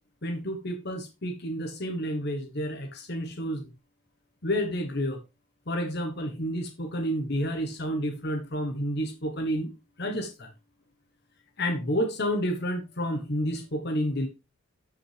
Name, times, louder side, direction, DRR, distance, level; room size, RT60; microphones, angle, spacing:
voice 1, 0.2-3.6 4.4-5.2 5.7-9.7 10.0-10.5 11.6-14.3, equal, 50° left, 5 dB, 1.2 m, -30 dB
12.5 x 5.5 x 3.3 m, 0.26 s
head